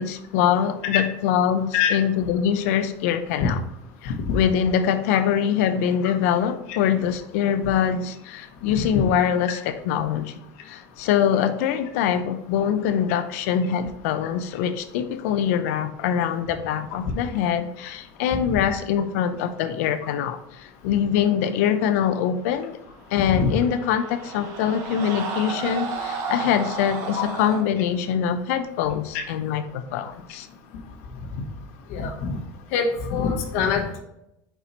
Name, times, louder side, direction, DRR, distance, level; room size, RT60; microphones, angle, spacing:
voice 1, 0.0-3.6 4.0-10.3 10.6-22.8 23.1-30.5, left 8 dB, 90° left, 9 dB, 0.6 m, -24 dB
sound 1, 23.2-27.6, right 4 dB, 40° right, 1.0 m, -32 dB
voice 2, 31.9-32.4 32.7-34.0, left 6 dB, 70° left, 3 dB, 1.2 m, -24 dB
5.8 x 4.6 x 4.0 m, 0.84 s
cardioid pair, 175°, 8 cm